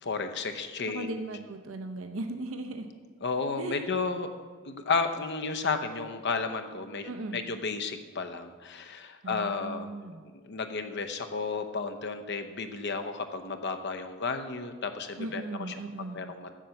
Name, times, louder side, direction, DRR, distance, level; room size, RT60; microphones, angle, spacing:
voice 1, 0.0-1.1 3.2-4.3 4.6-9.9 10.3-15.4 16.1-16.5, left 4 dB, 60° left, 7 dB, 0.8 m, -32 dB
voice 2, 0.9-2.9 3.6-3.8 7.0-7.5 9.2-10.2 15.2-16.3, right 2 dB, 85° right, 5 dB, 0.7 m, -37 dB
7.7 x 7.4 x 6.9 m, 1.5 s
head